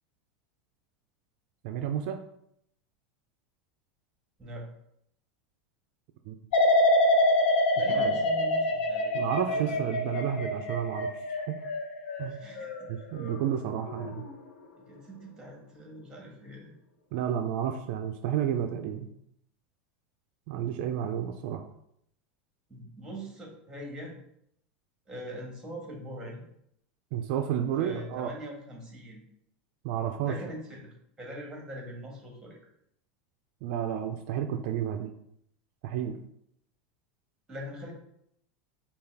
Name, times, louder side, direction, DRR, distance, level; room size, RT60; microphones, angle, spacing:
voice 1, 1.6-2.2 6.3-6.4 7.9-8.2 9.1-11.6 12.2-12.4 12.9-14.2 17.1-19.1 20.5-21.6 27.1-28.3 29.8-30.3 33.6-35.1 35.8-36.2, right 9 dB, 60° right, 6 dB, 0.3 m, -31 dB
sound 1, 6.5-13.5 13.9-14.3, left 1 dB, 80° left, 0.7 m, -26 dB
voice 2, 7.7-9.8 12.3-12.9 14.9-16.7 22.7-24.1 25.1-26.4 27.8-29.2 30.2-32.6 37.5-37.9, equal, 10° right, 0 dB, 1.5 m, -42 dB
5.3 x 2.3 x 3.4 m, 0.73 s
supercardioid pair, 115°, 6 cm